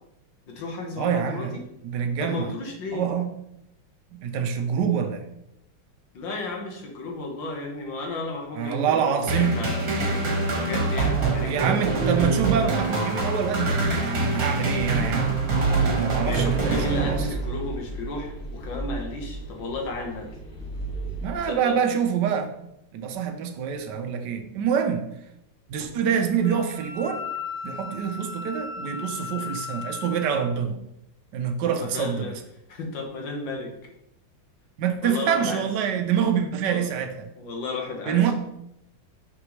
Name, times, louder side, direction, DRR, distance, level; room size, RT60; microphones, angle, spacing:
voice 1, 0.5-1.6 2.2-3.1 6.1-9.9 10.5-11.9 16.2-20.3 21.4-21.8 25.9-26.1 31.6-32.4 32.7-33.7 35.0-35.6 36.7-36.9 37.4-38.2, left 2 dB, 65° left, 1 dB, 1.8 m, -33 dB
voice 2, 1.0-1.5 1.8-2.5 2.9-3.3 4.1-5.2 8.5-9.6 11.4-15.4 15.9-17.3 21.2-22.5 22.9-25.1 25.7-27.2 27.6-30.8 31.3-32.4 34.8-37.3 38.1-38.3, right 7 dB, 70° right, 7 dB, 1.2 m, -26 dB
sound 1, 9.3-17.6, right 3 dB, 50° right, 1.6 m, -25 dB
sound 2, 14.7-21.4, right 2 dB, 45° left, 1.7 m, -34 dB
Wind instrument woodwind instrument, 26.4-30.5, left 5 dB, 30° left, 0.9 m, -36 dB
6.1 x 6.0 x 3.1 m, 0.81 s
omnidirectional pair, 2.3 m